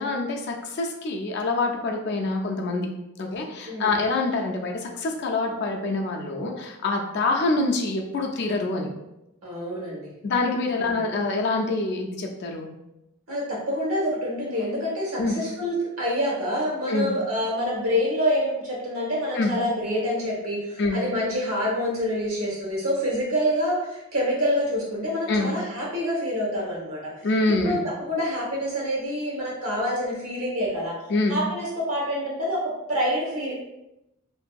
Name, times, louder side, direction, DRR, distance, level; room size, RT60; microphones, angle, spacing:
voice 1, 0.0-2.9 3.2-8.9 10.2-12.7 15.2-15.3 16.9-17.1 19.3-19.5 20.8-21.0 25.3-25.5 27.2-27.8 31.1-31.4, left 3 dB, 50° left, 1 dB, 0.4 m, -25 dB
voice 2, 9.4-10.1 10.8-11.0 13.3-27.1 27.6-31.0 31.3-33.5, equal, 75° right, -4 dB, 1.0 m, -27 dB
2.6 x 2.6 x 2.3 m, 0.89 s
head